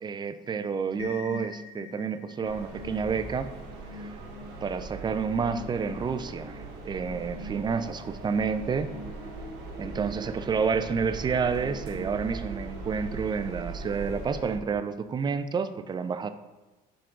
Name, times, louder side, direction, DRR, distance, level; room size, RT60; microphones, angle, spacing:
voice 1, 0.0-3.5 3.9-4.2 4.6-8.9 9.8-16.3, right 5 dB, 25° right, 10 dB, 0.4 m, -29 dB
sound 1, 1.0-12.6, left 2 dB, 80° left, 0.8 m, -45 dB
sound 2, 2.4-14.6, right 3 dB, 85° right, 1.2 m, -40 dB
6.7 x 3.7 x 3.8 m, 1.1 s
cardioid pair, 110°, 17 cm